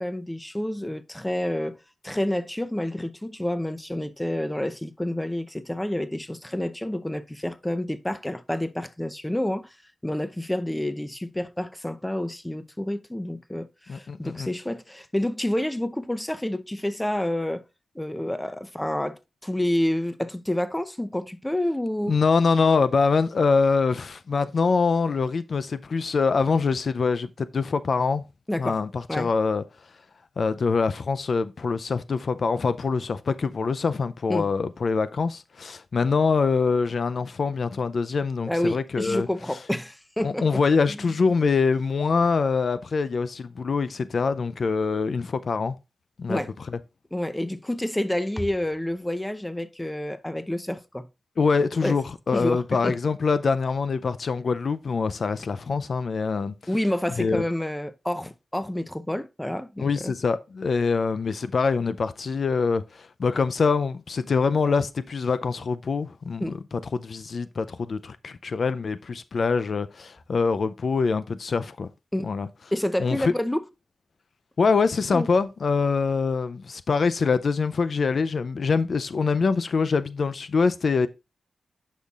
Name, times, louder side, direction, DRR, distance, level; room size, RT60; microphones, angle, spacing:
voice 1, 0.0-1.8 2.0-9.7 10.0-17.6 18.0-22.2 28.5-28.8 29.1-29.3 34.3-34.5 38.5-40.6 40.9-41.1 46.3-46.5 47.1-51.1 51.8-52.0 52.3-53.0 56.7-60.1 66.4-66.6 72.1-72.3 72.7-73.6 75.1-75.3, left 1 dB, 10° left, 0.6 m, -29 dB
voice 2, 13.9-14.5 22.1-28.2 28.6-29.6 30.4-39.3 40.2-45.7 46.2-46.4 51.4-56.5 57.2-57.4 59.8-71.9 72.2-72.5 73.0-73.3 74.6-81.1, left 4 dB, 65° left, 0.4 m, -24 dB
10.0 x 5.5 x 2.4 m
wide cardioid pair, 85°, 0 cm